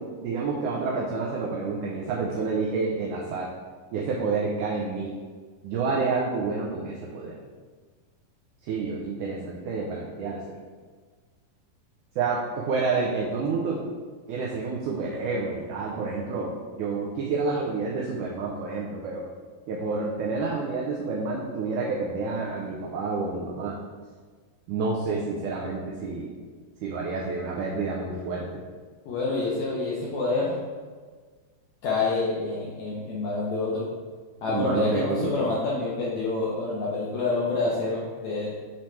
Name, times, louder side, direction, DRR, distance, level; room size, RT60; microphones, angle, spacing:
voice 1, 0.0-3.5 3.9-5.1 5.6-7.4 8.6-10.6 12.2-13.8 14.3-16.5 16.8-19.3 19.7-23.8 24.7-26.3 26.8-28.6 34.5-35.3, right 4 dB, 85° right, -3 dB, 1.8 m, -29 dB
voice 2, 29.0-30.6 31.8-33.8 34.4-38.5, left 3 dB, 85° left, -5 dB, 1.6 m, -27 dB
7.5 x 3.2 x 4.3 m, 1.5 s
omnidirectional pair, 4.3 m